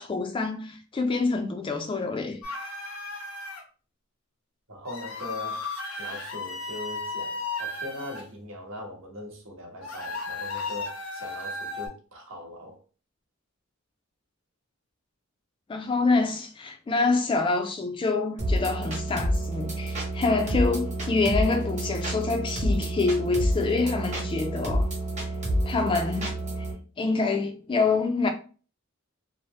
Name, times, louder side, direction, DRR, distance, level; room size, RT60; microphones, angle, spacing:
voice 1, 0.0-2.4 15.7-24.9 25.7-26.4 27.0-28.3, left 3 dB, 25° left, 0.3 m, -26 dB
sound 1, 2.4-3.6 4.9-8.2 9.8-11.9, left 3 dB, 85° left, 0.8 m, -34 dB
voice 2, 4.7-5.7 6.0-12.8, left 1 dB, 65° right, 1.0 m, -40 dB
sound 2, 18.4-26.7, right 1 dB, 35° right, 0.9 m, -29 dB
2.7 x 2.1 x 3.1 m
head